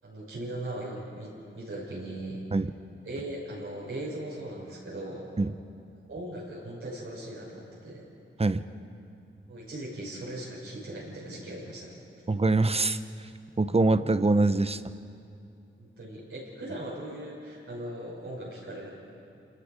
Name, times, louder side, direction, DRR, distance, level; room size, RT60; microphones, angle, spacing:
voice 1, 0.0-2.4 3.0-5.3 6.1-8.0 9.5-11.9 15.8-18.9, right 1 dB, 85° right, -6 dB, 6.2 m, -39 dB
voice 2, 12.3-13.0 13.6-14.8, right 2 dB, 30° right, 12 dB, 0.8 m, -23 dB
28.0 x 20.0 x 5.1 m, 2.6 s
cardioid pair, 60°, 21 cm